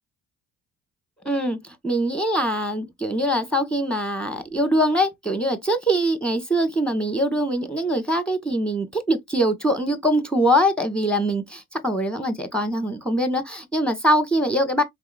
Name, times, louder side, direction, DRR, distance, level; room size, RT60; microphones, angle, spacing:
voice 1, 1.2-1.6 1.8-14.8, equal, ahead, 1.4 m, -23 dB
4.7 x 3.9 x 2.5 m
hypercardioid pair, 50°, 42 cm